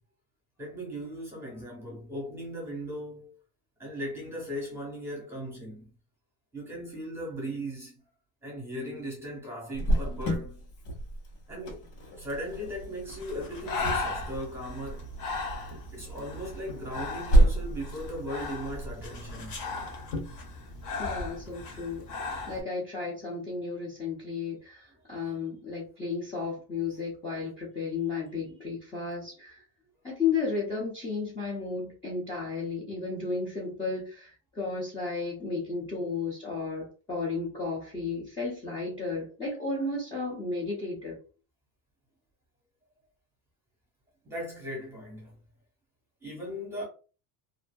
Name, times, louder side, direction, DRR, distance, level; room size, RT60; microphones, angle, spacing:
voice 1, 0.6-3.4 3.8-5.9 6.5-8.0 8.4-10.6 11.5-11.9 12.2-15.1 15.9-19.6 44.2-45.4 46.2-46.9, equal, 5° right, 0.8 m, -38 dB
Cricket, 9.7-21.2, right 1 dB, 90° left, 1.4 m, -31 dB
Breathing, 13.1-22.6, left 3 dB, 45° left, 0.8 m, -37 dB
voice 2, 21.0-29.6 30.0-41.2, left 4 dB, 15° left, 0.4 m, -33 dB
2.6 x 2.5 x 2.2 m
cardioid pair, 175°, 46 cm